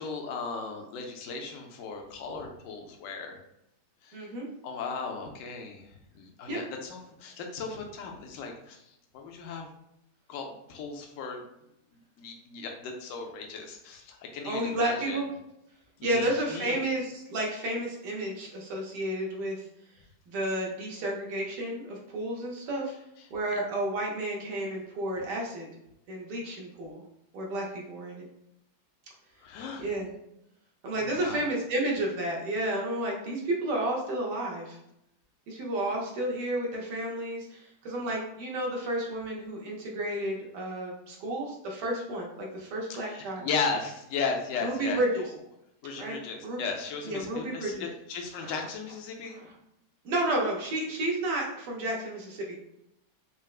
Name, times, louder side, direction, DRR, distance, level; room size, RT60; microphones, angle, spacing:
voice 1, 0.0-3.4 4.0-4.3 4.6-9.7 10.3-11.4 11.9-15.2 16.0-16.8 23.5-23.6 29.4-29.9 31.0-31.5 42.9-45.3 45.8-49.4, left 5 dB, 70° left, 3 dB, 0.8 m, -36 dB
voice 2, 4.1-4.5 6.5-6.6 14.5-15.3 16.0-19.6 20.3-22.9 23.3-25.7 26.1-27.0 27.3-28.3 29.8-30.1 30.8-34.8 35.5-43.5 44.6-45.2 46.0-46.2 46.4-46.6 47.0-47.8 48.4-48.5 49.3-49.5 50.0-52.6, right 1 dB, 85° right, -1 dB, 1.4 m, -31 dB
4.3 x 2.0 x 2.3 m, 0.81 s
omnidirectional pair, 1.8 m